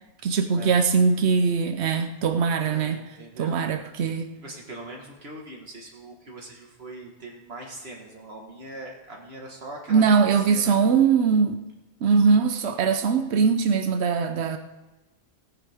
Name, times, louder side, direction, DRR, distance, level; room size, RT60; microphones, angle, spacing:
voice 1, 0.2-3.0 3.4-4.3 9.9-11.6 12.0-14.6, right 5 dB, 90° right, 8 dB, 1.0 m, -21 dB
voice 2, 2.6-3.6 4.4-10.0 10.5-10.9, right 1 dB, 70° right, -1 dB, 1.9 m, -41 dB
17.5 x 9.9 x 3.5 m, 1.1 s
omnidirectional pair, 1.1 m